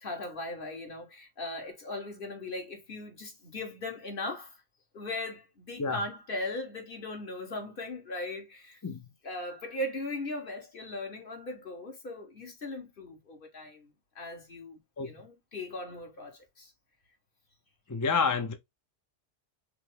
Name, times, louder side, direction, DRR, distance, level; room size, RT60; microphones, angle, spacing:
voice 1, 0.0-4.6 4.9-8.8 9.2-13.9 14.1-16.7, left 2 dB, 50° left, 1.5 m, -38 dB
voice 2, 17.9-18.5, left 5 dB, 30° left, 0.3 m, -28 dB
5.7 x 2.0 x 3.6 m
omnidirectional pair, 1.2 m